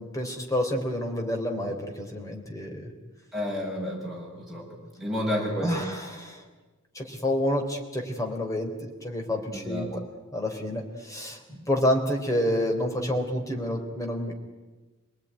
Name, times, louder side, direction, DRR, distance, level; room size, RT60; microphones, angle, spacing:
voice 1, 0.0-2.9 5.6-6.4 6.9-8.7 9.0-10.0 10.3-14.3, left 1 dB, 15° left, 2 dB, 3.6 m, -29 dB
voice 2, 3.3-5.8 9.5-9.9, left 1 dB, ahead, -4 dB, 7.6 m, -31 dB
26.5 x 19.5 x 9.9 m, 1.2 s
head